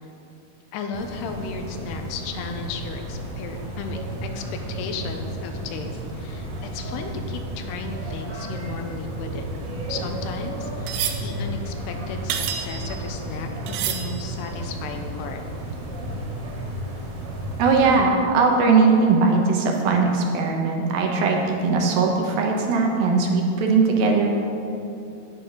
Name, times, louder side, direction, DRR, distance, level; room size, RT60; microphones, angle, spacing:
voice 1, 0.7-9.5 9.9-15.4, left 4 dB, 85° left, 5 dB, 2.9 m, -35 dB
sound 1, 0.9-18.0, right 1 dB, 45° right, 2.4 m, -33 dB
sound 2, 9.4-13.3 13.7-14.6 15.1-15.2, right 9 dB, 85° right, 2.9 m, -31 dB
voice 2, 17.6-24.3, right 4 dB, 70° right, 1 dB, 2.6 m, -19 dB
9.9 x 9.2 x 6.0 m, 2.7 s
omnidirectional pair, 4.7 m